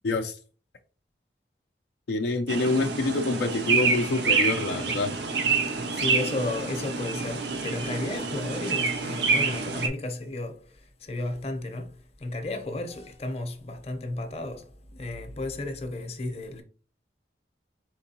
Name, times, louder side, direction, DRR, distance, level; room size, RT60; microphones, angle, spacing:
voice 1, 0.0-0.4 2.1-5.1, left 2 dB, 65° left, 0.4 m, -26 dB
sound 1, 2.5-9.9, right 4 dB, 70° right, 0.7 m, -27 dB
voice 2, 5.6-16.6, left 2 dB, 35° left, 0.7 m, -33 dB
4.5 x 3.6 x 2.8 m
head